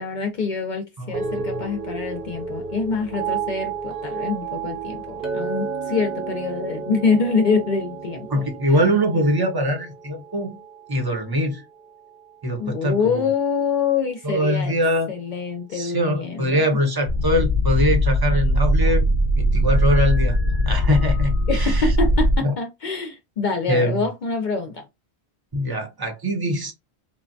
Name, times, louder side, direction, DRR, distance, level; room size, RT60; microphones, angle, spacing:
voice 1, 0.0-8.4 8.7-8.8 12.6-14.7 15.1-16.6 21.5-24.8, left 5 dB, 60° left, 0.6 m, -25 dB
voice 2, 1.0-1.6 8.3-10.6 10.9-11.6 12.4-13.3 14.2-15.1 15.7-19.0 19.4-20.4 20.7-21.9 22.4-22.5 23.7-24.0 25.5-26.7, equal, 25° right, 0.7 m, -23 dB
sound 1, 1.1-11.5 11.8-12.3, right 5 dB, 65° right, 0.9 m, -32 dB
Chink clink, 5.2-9.7, right 5 dB, 25° left, 0.9 m, -36 dB
sound 2, 17.1-22.4, equal, 90° right, 1.8 m, -20 dB
3.2 x 2.1 x 2.5 m
omnidirectional pair, 1.1 m